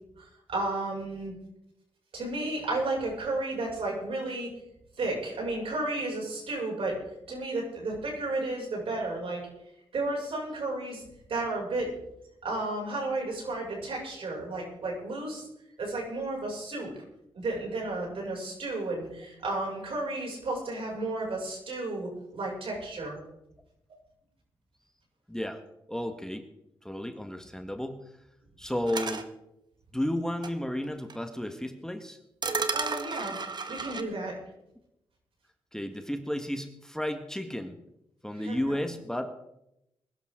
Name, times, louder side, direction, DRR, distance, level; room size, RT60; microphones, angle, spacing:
voice 1, 0.2-1.3 2.1-4.5 5.0-7.0 7.3-9.4 9.9-11.0 11.3-11.9 12.4-15.5 15.8-16.9 17.3-23.2 32.7-33.4 33.7-34.3 38.4-38.8, right 2 dB, 70° right, -1 dB, 6.7 m, -33 dB
voice 2, 25.3-25.6 25.9-26.4 26.8-28.1 28.6-29.3 29.9-32.2 35.7-37.8 38.2-39.4, left 1 dB, 5° left, 7 dB, 1.6 m, -33 dB
sound 1, 28.9-29.2 30.4-30.5 31.1-31.2 32.4-34.0, right 4 dB, 45° right, 1.5 m, -32 dB
21.5 x 12.0 x 3.8 m, 0.85 s
supercardioid pair, 50°, 10 cm